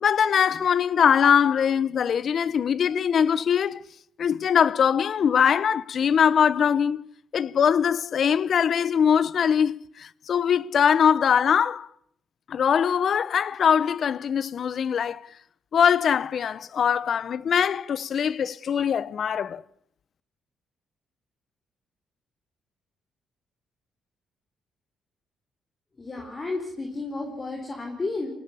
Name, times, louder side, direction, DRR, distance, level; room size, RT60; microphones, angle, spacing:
voice 1, 0.0-3.8 4.2-7.0 7.3-11.9 12.5-15.2 15.7-19.6, left 7 dB, 55° left, 0.9 m, -22 dB
voice 2, 26.0-28.3, left 3 dB, 30° left, 4.9 m, -32 dB
26.5 x 18.5 x 7.0 m
cardioid pair, 90°, 0 cm